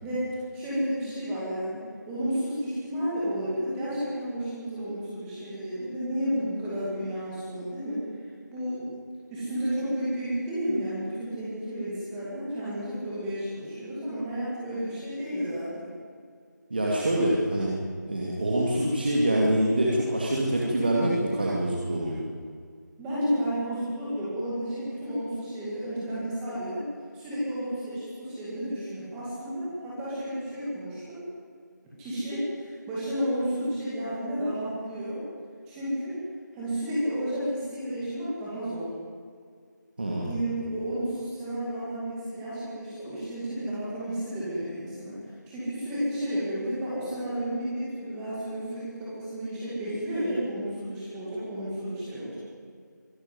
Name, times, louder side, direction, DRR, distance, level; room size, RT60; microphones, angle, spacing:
voice 1, 0.0-8.1 8.5-8.8 9.3-15.9 23.0-26.8 27.1-31.2 32.0-35.2 35.7-36.2 36.5-38.9 40.2-45.2 45.5-52.4, equal, 5° right, -9 dB, 2.2 m, -32 dB
voice 2, 16.7-17.8 18.1-22.2 40.0-40.4, right 1 dB, 30° right, -4 dB, 2.6 m, -25 dB
23.5 x 13.0 x 9.5 m, 2.1 s
figure-of-eight pair, 175°, 10 cm